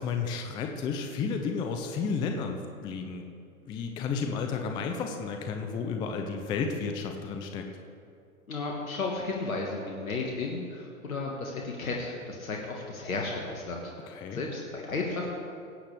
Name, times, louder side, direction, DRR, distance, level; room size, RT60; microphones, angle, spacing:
voice 1, 0.0-3.3 3.7-7.7 14.1-14.4, left 5 dB, 10° left, 4 dB, 0.4 m, -32 dB
voice 2, 8.5-15.4, left 3 dB, 75° left, 0 dB, 1.6 m, -34 dB
18.0 x 8.2 x 3.3 m, 2.4 s
figure-of-eight pair, 105°, 42 cm